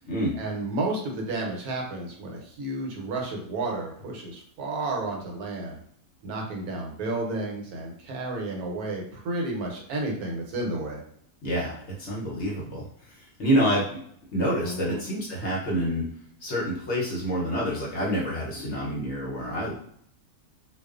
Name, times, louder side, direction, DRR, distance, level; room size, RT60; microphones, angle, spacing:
voice 1, 0.3-5.8 6.2-11.0 14.6-15.0, right 2 dB, 80° right, 0 dB, 1.1 m, -32 dB
voice 2, 11.4-14.0 14.3-16.0 16.4-19.7, equal, 55° left, -4 dB, 0.8 m, -27 dB
2.4 x 2.4 x 2.3 m, 0.66 s
omnidirectional pair, 1.6 m